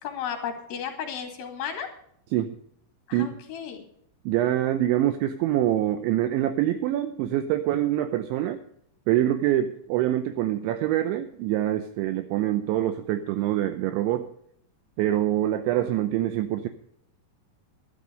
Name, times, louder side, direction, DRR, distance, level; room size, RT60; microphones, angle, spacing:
voice 1, 0.0-1.9 3.1-3.9, left 8 dB, 55° left, 4 dB, 3.6 m, -34 dB
voice 2, 4.3-8.6 9.1-14.3 15.0-16.7, right 13 dB, 80° right, 9 dB, 2.8 m, -25 dB
12.5 x 12.0 x 5.2 m, 0.68 s
omnidirectional pair, 5.9 m